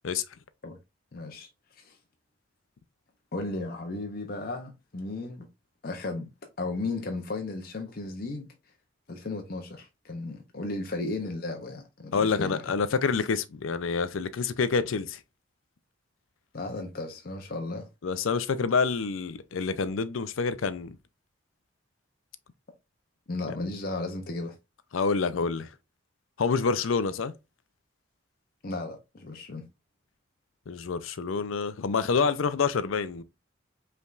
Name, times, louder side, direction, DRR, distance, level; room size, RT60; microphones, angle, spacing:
voice 1, 1.1-2.0 3.3-5.5 5.8-6.3 6.6-8.5 9.1-12.6 16.5-17.9 23.3-24.6 28.6-29.7, left 2 dB, 45° left, 0.6 m, -35 dB
voice 2, 12.1-15.2 18.0-21.0 23.5-23.7 24.9-25.7 26.4-27.3 30.7-33.2, left 5 dB, 85° left, 0.5 m, -27 dB
5.3 x 3.3 x 2.4 m
head